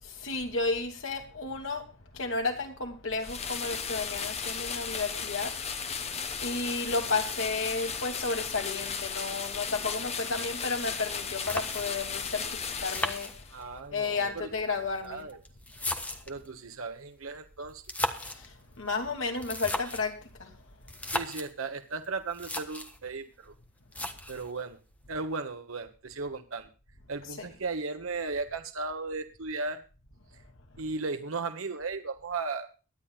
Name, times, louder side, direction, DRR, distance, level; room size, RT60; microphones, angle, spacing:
voice 1, 0.0-6.1 6.4-13.6 13.9-15.2 18.2-20.6 27.4-27.5, left 3 dB, 65° left, 2.7 m, -33 dB
sound 1, 3.2-13.6, left 6 dB, 30° left, 1.1 m, -35 dB
sound 2, 11.1-11.2 11.5-12.1 12.9-13.9 14.8-16.5 17.7-18.5 19.3-20.1 20.9-21.5 22.0-22.1 22.3-23.0 23.9-24.5, left 1 dB, 5° left, 1.2 m, -35 dB
voice 2, 13.5-14.5 15.0-15.4 16.3-17.8 21.1-23.5 24.3-24.8 25.1-26.7 27.1-29.8 30.8-32.7, right 3 dB, 85° right, 1.2 m, -36 dB
23.0 x 10.5 x 2.4 m
head